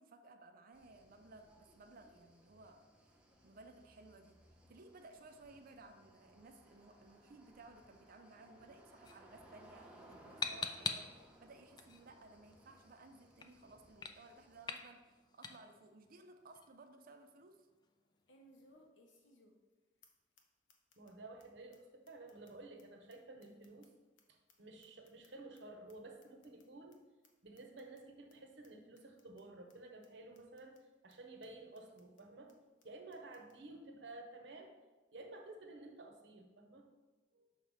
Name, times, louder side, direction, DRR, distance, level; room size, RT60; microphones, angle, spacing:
voice 1, 0.0-2.9 3.4-4.4 4.7-15.1 15.3-17.7, right 2 dB, 50° right, 6 dB, 0.5 m, -58 dB
sound 1, 0.7-14.8, right 1 dB, 5° right, 0.8 m, -63 dB
sound 2, 9.0-18.9, left 5 dB, 25° left, 0.3 m, -48 dB
sound 3, 15.9-16.0 16.5-16.6 18.3-19.7 20.0-20.1 20.4-20.5 20.7-21.1 21.4-21.5 21.7-21.8 22.1-24.2 24.5-25.6 25.9-26.0 26.2-26.6 26.9-27.0 27.2-27.3 27.6-28.0 28.3-28.4 28.6-28.7 29.0-29.4 29.7-29.8 30.0-30.1 30.3-30.8 31.1-31.2 31.4-31.5 31.7-32.2 32.5-32.6 32.8-32.9 33.1-33.6, left 1 dB, 80° left, 0.9 m, -67 dB
voice 2, 21.0-23.9 24.3-27.0 27.4-30.8 31.0-32.5 32.8-34.8 35.1-36.9 37.3-37.5, right 2 dB, 70° right, 3 dB, 0.8 m, -53 dB
5.9 x 3.2 x 5.4 m, 1.2 s
head